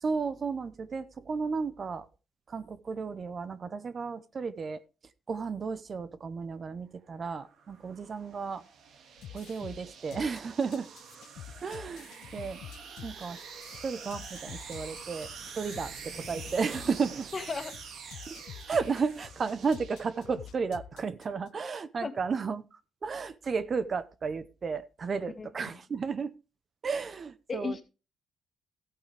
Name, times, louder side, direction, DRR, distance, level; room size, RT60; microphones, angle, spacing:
voice 1, 0.0-2.1 2.5-4.8 5.3-8.6 9.3-10.9 11.6-12.6 13.0-13.4 13.8-15.3 15.5-17.3 18.3-18.4 18.7-26.3 26.8-27.8, right 5 dB, 45° right, 14 dB, 0.8 m, -33 dB
sound 1, 7.1-20.6, right 6 dB, 70° right, 2.1 m, -46 dB
sound 2, 9.2-21.5, left 10 dB, 75° left, 0.5 m, -48 dB
voice 2, 17.3-17.7 22.0-22.1 25.4-25.5 27.5-27.8, left 4 dB, 35° left, 7 dB, 1.8 m, -35 dB
14.0 x 8.5 x 3.4 m, 0.31 s
cardioid pair, 90°, 0 cm